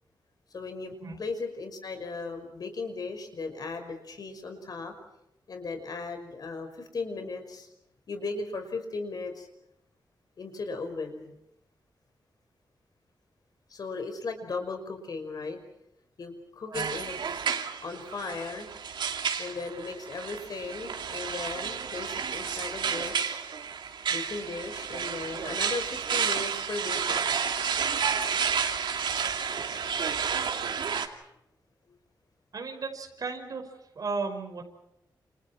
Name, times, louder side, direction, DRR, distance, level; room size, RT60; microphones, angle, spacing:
voice 1, 0.5-4.9 5.5-7.7 8.1-9.5 10.4-11.3 13.7-15.6 16.2-17.2 17.8-18.7 19.4-23.5 24.1-27.3, left 3 dB, 55° left, 6 dB, 5.5 m, -37 dB
sound 1, 16.7-31.1, right 6 dB, 90° right, 2.6 m, -31 dB
voice 2, 32.5-33.7 33.9-34.6, right 4 dB, 50° right, 3 dB, 5.6 m, -35 dB
29.5 x 29.0 x 4.5 m, 0.83 s
wide cardioid pair, 155°, 8 cm